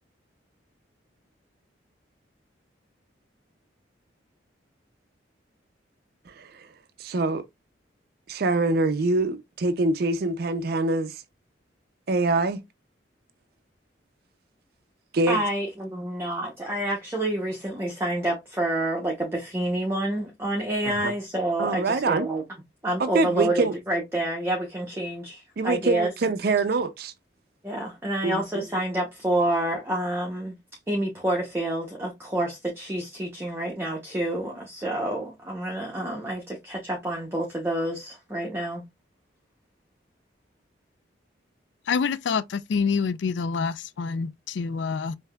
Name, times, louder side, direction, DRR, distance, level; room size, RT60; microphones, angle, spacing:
voice 1, 6.3-6.7 7.0-7.4 8.3-11.2 12.1-12.6 15.1-15.4 20.8-21.1 21.6-22.3 23.0-23.7 25.6-27.1 28.2-28.6, right 3 dB, 55° right, 0.4 m, -25 dB
voice 2, 15.3-22.4 22.8-26.1 27.6-30.5 30.9-38.8, right 1 dB, 15° right, 0.7 m, -28 dB
voice 3, 41.9-45.2, left 5 dB, 70° left, 0.4 m, -27 dB
5.5 x 2.7 x 2.3 m
head